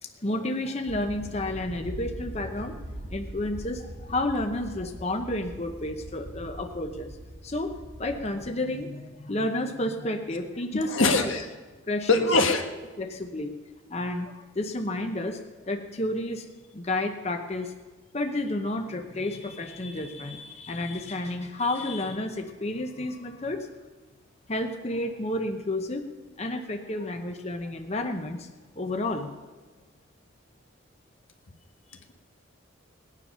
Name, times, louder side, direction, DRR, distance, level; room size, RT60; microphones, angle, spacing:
voice 1, 0.0-2.7 3.1-7.2 7.4-11.3 11.9-12.3 13.0-13.5 13.9-15.4 15.7-16.4 16.7-17.7 18.1-23.7 24.5-26.1 26.4-28.5 28.8-29.3, left 1 dB, 30° left, 5 dB, 0.8 m, -31 dB
sound 1, 0.9-8.5, equal, 75° right, 2.2 m, -41 dB
voice 2, 10.7-11.5 12.1-12.8, left 3 dB, 80° left, 5 dB, 1.3 m, -23 dB
19.0 x 9.9 x 5.6 m, 1.3 s
head